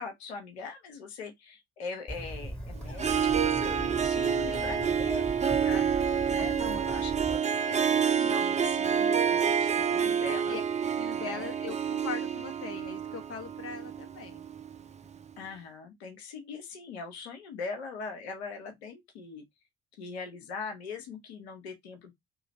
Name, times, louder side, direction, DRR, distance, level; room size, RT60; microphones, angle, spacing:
voice 1, 0.0-6.0 6.3-10.6 11.2-11.5 15.4-19.5 20.0-22.1, left 4 dB, 90° left, 0.8 m, -41 dB
Bird, 2.1-7.4, right 1 dB, 5° left, 1.9 m, -40 dB
Harp, 2.9-14.8, right 7 dB, 20° right, 0.5 m, -28 dB
voice 2, 4.1-5.0 10.5-10.6 10.9-14.4, left 6 dB, 45° left, 0.9 m, -40 dB
2.9 x 2.4 x 4.1 m
hypercardioid pair, 55°, 31 cm